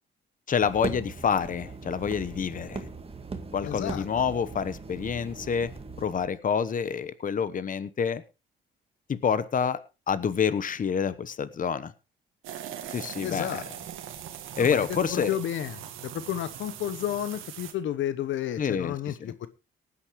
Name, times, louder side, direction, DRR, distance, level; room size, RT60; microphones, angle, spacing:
voice 1, 0.5-2.9 3.5-5.7 6.0-8.2 9.1-9.8 10.1-11.9 12.9-13.5 14.5-15.3 18.6-19.0 19.2-19.3, left 7 dB, 40° left, 1.0 m, -27 dB
sound 1, 0.6-6.3, right 4 dB, 30° right, 1.8 m, -39 dB
voice 2, 3.6-4.3 13.2-13.6 14.6-19.5, left 11 dB, 75° left, 0.9 m, -32 dB
sound 2, 12.4-17.7, right 10 dB, 85° right, 1.8 m, -41 dB
18.5 x 9.8 x 3.1 m
cardioid pair, 90°, 20 cm